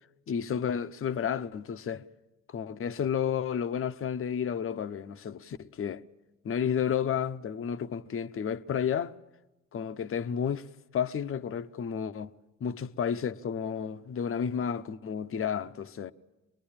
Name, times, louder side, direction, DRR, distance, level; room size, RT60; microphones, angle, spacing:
voice 1, 0.3-2.0 2.5-6.0 6.4-9.2 9.7-10.7 10.9-12.3 12.6-16.1, left 8 dB, 45° left, 0.8 m, -31 dB
24.5 x 21.0 x 8.8 m
cardioid pair, 90°, 30 cm